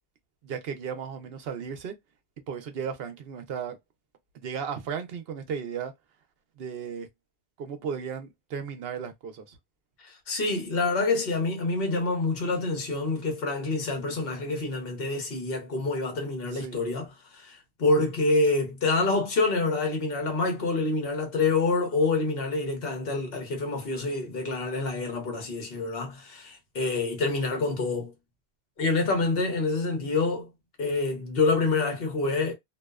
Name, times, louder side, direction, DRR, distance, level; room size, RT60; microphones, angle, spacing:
voice 1, 0.4-1.9 2.5-3.8 4.3-5.9 6.6-7.1 7.6-9.6 16.5-16.8, right 7 dB, 65° right, 0.8 m, -35 dB
voice 2, 10.0-17.1 17.3-28.1 28.8-30.5 30.8-32.5, left 3 dB, 60° left, 1.1 m, -27 dB
2.6 x 2.1 x 2.3 m
omnidirectional pair, 1.1 m